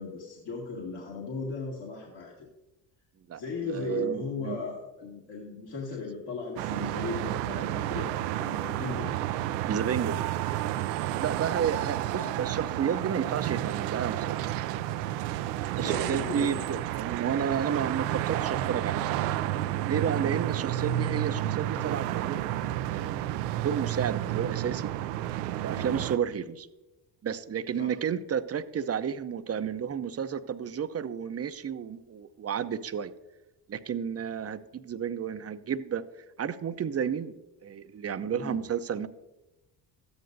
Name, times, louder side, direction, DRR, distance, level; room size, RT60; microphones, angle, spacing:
voice 1, 0.0-2.5 3.3-8.1 8.4-9.2 12.2-12.3 15.8-16.6 25.8-26.0 27.7-27.9 38.3-38.6, left 4 dB, 60° left, -3 dB, 2.0 m, -37 dB
voice 2, 3.3-4.6 9.7-10.2 11.2-14.4 15.8-19.3 19.9-22.4 22.8-24.9 25.6-26.7 27.2-33.1 33.7-36.0 36.4-37.3 37.6-39.1, right 8 dB, 30° right, 12 dB, 0.6 m, -31 dB
sound 1, 6.6-26.2, right 13 dB, 85° right, 0.5 m, -31 dB
13.5 x 9.5 x 2.6 m, 1.0 s
hypercardioid pair, 60°, 47 cm